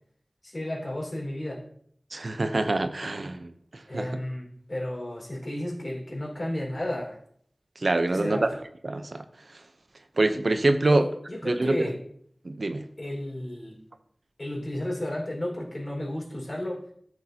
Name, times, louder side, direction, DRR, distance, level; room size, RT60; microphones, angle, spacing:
voice 1, 0.4-1.6 3.9-7.2 8.1-8.4 10.9-12.0 13.0-13.8 14.4-16.8, left 1 dB, 50° left, -2 dB, 4.4 m, -33 dB
voice 2, 2.1-4.1 7.8-8.5 8.8-9.2 10.2-11.1 11.4-11.9 12.4-12.8, right 2 dB, 70° right, 8 dB, 0.7 m, -25 dB
13.5 x 6.6 x 2.8 m, 0.64 s
wide cardioid pair, 60°, 0 cm